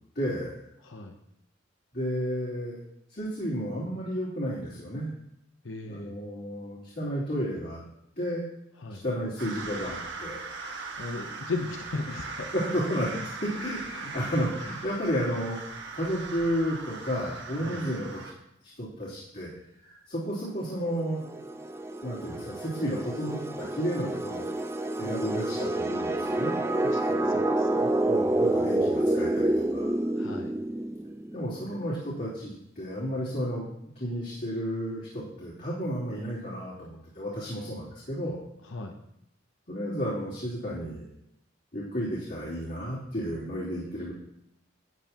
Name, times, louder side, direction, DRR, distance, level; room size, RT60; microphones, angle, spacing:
voice 1, 0.1-0.6 1.9-2.8 3.1-5.1 5.9-7.8 8.2-8.4 8.9-10.7 12.1-12.2 12.5-13.1 13.4-18.3 18.8-19.5 19.8-21.3 22.0-24.4 25.0-26.6 28.1-29.9 31.3-33.6 33.9-38.4 39.7-41.1 41.7-44.1, equal, 55° left, -10 dB, 3.2 m, -32 dB
voice 2, 0.8-1.2 5.6-6.2 8.8-9.0 11.0-12.8 13.1-13.2 17.6-17.8 25.0-25.3 26.8-27.9 30.2-30.5 38.7-39.0, left 3 dB, 80° left, 4 dB, 0.8 m, -37 dB
sound 1, 9.4-18.3, right 4 dB, 60° right, 1.3 m, -39 dB
sound 2, 20.9-31.4, right 1 dB, 15° right, 0.5 m, -28 dB
12.5 x 9.2 x 2.9 m, 0.79 s
head